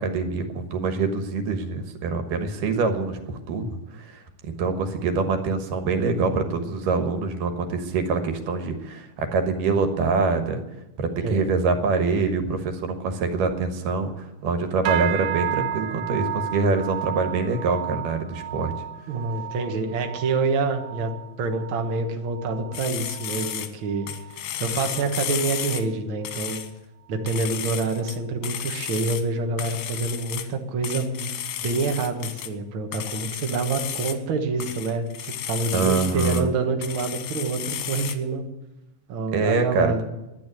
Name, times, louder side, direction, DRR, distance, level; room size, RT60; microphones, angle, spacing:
voice 1, 0.0-10.6 11.0-18.7 35.7-36.5 39.3-39.9, right 4 dB, 90° right, 7 dB, 3.0 m, -25 dB
voice 2, 6.1-6.6 11.2-11.5 19.1-21.1 21.4-24.1 24.6-26.6 27.1-31.3 31.6-38.4 39.1-40.0, right 4 dB, 50° right, 4 dB, 1.8 m, -27 dB
sound 1, 14.9-24.4 24.7-25.1 25.5-25.9 26.4-26.5, right 10 dB, 75° right, 1.6 m, -33 dB
sound 2, 22.7-23.7 24.1-25.9 26.3-26.7 27.3-28.2 28.4-29.3 29.6-30.5 30.8-32.5 32.9-34.2 34.6-36.5 36.8-38.1, left 10 dB, 85° left, 2.6 m, -33 dB
12.0 x 9.5 x 9.2 m, 0.97 s
omnidirectional pair, 3.7 m